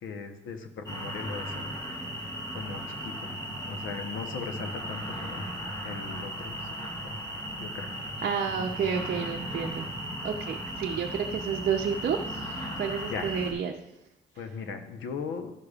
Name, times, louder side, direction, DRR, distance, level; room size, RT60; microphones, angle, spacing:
voice 1, 0.0-1.7 2.5-3.3 3.6-5.5 5.8-6.7 7.0-7.2 7.5-7.9 13.1-13.4 14.4-15.5, left 5 dB, 75° left, 7 dB, 1.0 m, -38 dB
sound 1, 0.9-13.5, equal, 20° left, 2.0 m, -36 dB
voice 2, 8.2-9.9 10.2-13.8, right 7 dB, 50° right, 0 dB, 0.7 m, -30 dB
12.5 x 6.5 x 2.4 m, 0.86 s
cardioid pair, 90°, 20 cm